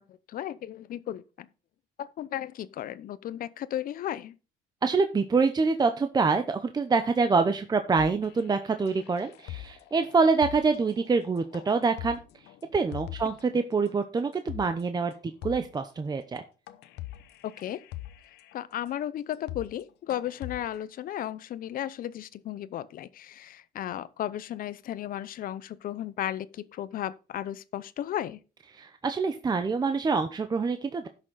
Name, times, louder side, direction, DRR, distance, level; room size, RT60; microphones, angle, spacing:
voice 1, 0.0-1.5 2.0-4.3 17.4-17.8 18.5-28.4, left 11 dB, 55° left, 0.7 m, -35 dB
voice 2, 4.8-12.2 12.7-15.1 15.4-16.4 28.8-31.1, right 4 dB, 25° right, 0.8 m, -26 dB
sound 1, 8.0-13.5 13.8-13.9 14.3-14.8 15.1-15.2 15.4-15.9 16.4-16.5 16.7-18.5 19.0-19.1 19.3-19.8 20.1-20.8, left 15 dB, 80° left, 0.9 m, -43 dB
11.0 x 6.3 x 4.0 m
cardioid pair, 110°, 17 cm